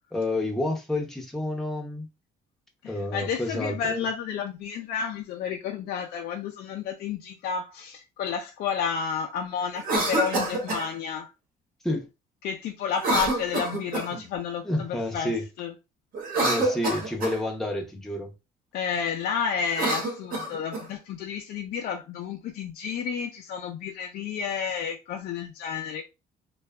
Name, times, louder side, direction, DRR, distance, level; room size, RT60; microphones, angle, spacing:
voice 1, 0.1-2.1 2.9-4.0 11.8-12.1 14.6-15.4 16.4-18.3, left 1 dB, ahead, 0.6 m, -29 dB
voice 2, 2.8-11.3 12.4-15.7 18.7-26.1, left 7 dB, 65° left, 0.4 m, -31 dB
Cough, 9.7-10.9 13.0-14.2 16.1-17.4 19.6-20.9, right 2 dB, 60° right, 1.1 m, -27 dB
2.6 x 2.3 x 2.2 m
cardioid pair, 110°, 17 cm